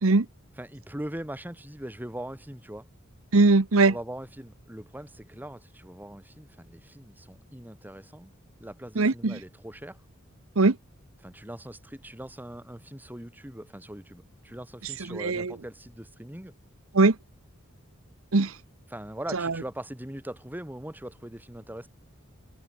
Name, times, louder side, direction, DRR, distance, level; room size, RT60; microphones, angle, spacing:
voice 1, 0.6-2.9 3.8-8.3 8.6-10.0 11.2-16.5 18.9-21.9, right 1 dB, 10° right, 2.2 m, -41 dB
voice 2, 3.3-3.9 9.0-9.4 10.6-10.7 15.1-15.5 16.9-17.1 18.3-18.5 19.3-19.5, right 3 dB, 75° right, 1.0 m, -20 dB
head